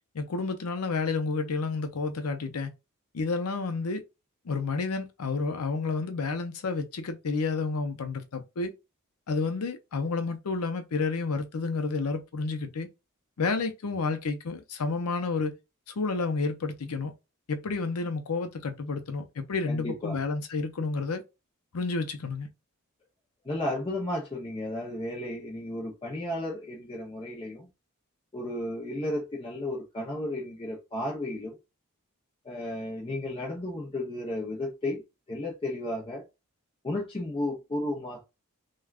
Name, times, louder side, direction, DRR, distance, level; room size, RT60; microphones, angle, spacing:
voice 1, 0.1-2.7 3.1-4.0 4.5-8.7 9.3-12.9 13.4-15.5 16.0-17.1 17.5-21.2 21.7-22.5, left 4 dB, 85° left, 0.6 m, -30 dB
voice 2, 19.7-20.2 23.4-27.7 28.3-31.6 32.4-35.0 35.3-36.2 36.8-38.3, left 1 dB, 25° left, 0.6 m, -33 dB
3.3 x 2.3 x 2.4 m
head